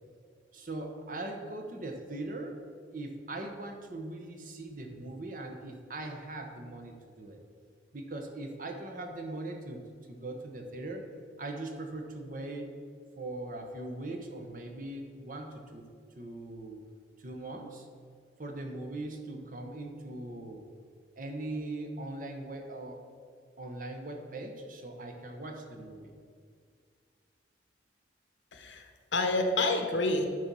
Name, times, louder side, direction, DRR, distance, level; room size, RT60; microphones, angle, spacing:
voice 1, 0.5-2.6 2.9-7.4 7.9-11.0 11.4-12.7 13.2-15.9 16.2-16.8 17.2-17.9 18.4-20.6 21.2-23.0 23.6-26.1, right 2 dB, 45° right, 3 dB, 1.0 m, -40 dB
voice 2, 28.5-30.3, left 2 dB, 80° left, 5 dB, 1.0 m, -29 dB
10.5 x 4.1 x 6.1 m, 2.1 s
head